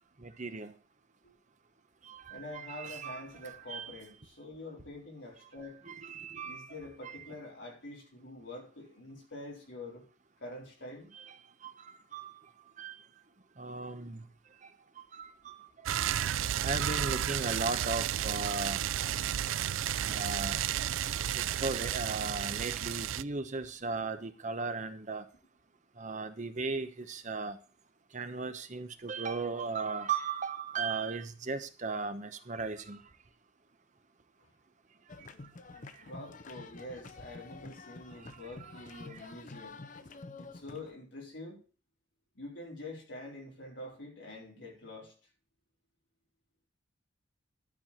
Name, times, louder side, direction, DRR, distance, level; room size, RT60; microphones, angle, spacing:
voice 1, 0.2-0.7 2.0-4.0 5.9-6.7 11.1-11.3 11.6-12.3 12.8-13.0 13.6-14.2 15.1-15.5 16.6-18.8 20.0-20.6 21.3-25.2 26.0-27.6 28.1-33.0 38.6-39.2, right 4 dB, 40° right, 9 dB, 0.9 m, -37 dB
voice 2, 2.3-5.8 6.4-10.1 10.4-11.1 34.4-34.5 36.0-39.8 40.4-41.6 42.3-45.1, left 2 dB, 65° left, -2 dB, 4.2 m, -46 dB
sound 1, 15.9-23.2, right 11 dB, 90° right, 0.4 m, -32 dB
sound 2, 35.1-40.9, left 3 dB, 40° left, 0.7 m, -49 dB
11.5 x 4.7 x 7.3 m, 0.37 s
head